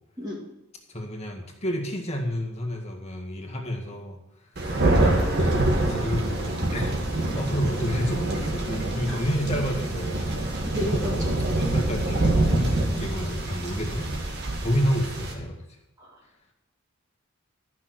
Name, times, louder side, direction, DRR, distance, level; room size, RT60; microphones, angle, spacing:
voice 1, 0.9-4.2 4.9-10.3 10.5-10.6 10.9-11.3 11.6-14.3 14.6-15.6, equal, 30° left, 1 dB, 1.9 m, -30 dB
Thunder, 4.6-15.3, right 1 dB, 55° right, 2.1 m, -25 dB
voice 2, 10.6-11.3 16.0-16.1, left 1 dB, 20° right, -4 dB, 2.1 m, -33 dB
13.0 x 6.1 x 6.4 m, 0.93 s
head